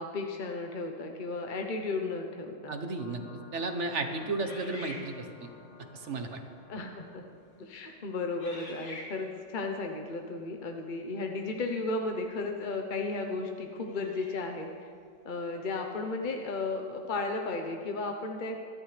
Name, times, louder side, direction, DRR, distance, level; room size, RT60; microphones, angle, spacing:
voice 1, 0.0-2.8 6.7-7.2 7.6-14.9 15.2-18.6, left 3 dB, 40° left, 3 dB, 0.7 m, -34 dB
voice 2, 2.7-3.2 3.5-5.5 5.9-6.4, right 3 dB, 50° right, 6 dB, 1.1 m, -33 dB
sound 1, 3.0-8.2, left 5 dB, 75° left, 1.7 m, -53 dB
sound 2, 4.4-5.6 6.4-6.6 7.3-7.6 8.4-9.5 12.2-12.3 13.8-14.7, left 1 dB, 60° left, 2.4 m, -47 dB
24.0 x 11.5 x 3.3 m, 2.1 s
omnidirectional pair, 1.9 m